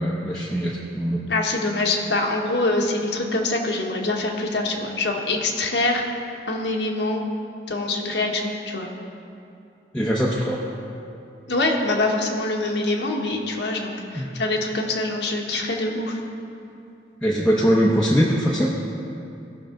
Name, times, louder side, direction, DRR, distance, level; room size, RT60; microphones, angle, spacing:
voice 1, 0.0-1.2 9.9-10.6 14.1-14.3 17.2-18.7, equal, 5° left, -6 dB, 0.8 m, -21 dB
voice 2, 1.3-6.1 6.5-7.2 7.7-8.9 11.5-16.2, left 2 dB, 80° left, 0 dB, 1.3 m, -24 dB
17.5 x 6.4 x 3.8 m, 2.7 s
head